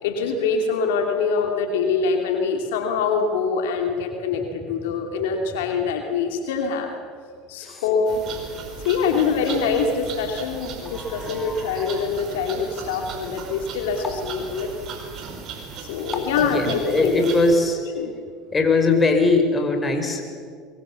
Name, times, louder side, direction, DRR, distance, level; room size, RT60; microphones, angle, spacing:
voice 1, 0.0-6.9 7.5-8.2 8.8-14.7 15.8-17.1 18.0-18.1, left 5 dB, 80° left, 4 dB, 2.6 m, -24 dB
sound 1, 8.1-17.6, right 5 dB, 50° right, 5.0 m, -37 dB
voice 2, 10.9-12.0 16.1-17.8 18.5-20.2, left 3 dB, 20° left, 4 dB, 4.8 m, -21 dB
23.5 x 23.0 x 7.1 m, 2.1 s
hypercardioid pair, 90°, 0 cm